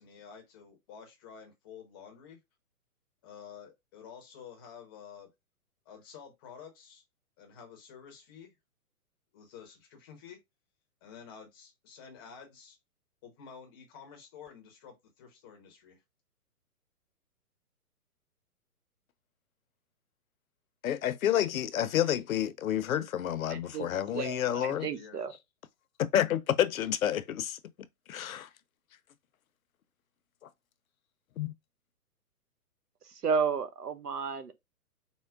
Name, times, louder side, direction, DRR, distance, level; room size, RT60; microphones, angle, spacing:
voice 1, 0.0-2.4 3.2-5.3 5.9-7.0 7.4-8.5 9.3-10.4 11.0-12.8 13.2-16.0 24.9-25.2, left 7 dB, 15° left, 0.5 m, -50 dB
voice 2, 20.8-24.9 26.0-27.6 28.1-28.5 31.4-31.5, left 11 dB, 65° left, 0.6 m, -29 dB
voice 3, 23.5-25.3 33.2-34.5, right 5 dB, 90° right, 0.9 m, -32 dB
4.4 x 2.1 x 3.5 m
hypercardioid pair, 135°, 45 cm